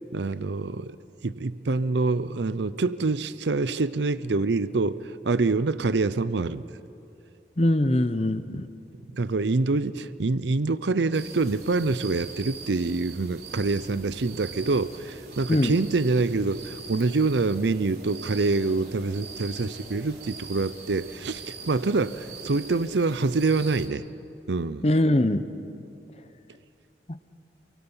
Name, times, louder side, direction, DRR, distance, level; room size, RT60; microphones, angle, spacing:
voice 1, 0.1-1.0 1.2-6.6 9.1-24.1 24.5-24.9, right 3 dB, 80° right, 15 dB, 0.6 m, -26 dB
voice 2, 7.6-8.7 15.5-15.7 24.8-25.4 27.1-27.2, left 1 dB, 35° left, 12 dB, 0.8 m, -22 dB
sound 1, 11.1-23.9, right 4 dB, 60° right, 3.3 m, -43 dB
28.5 x 23.5 x 5.7 m, 2.7 s
head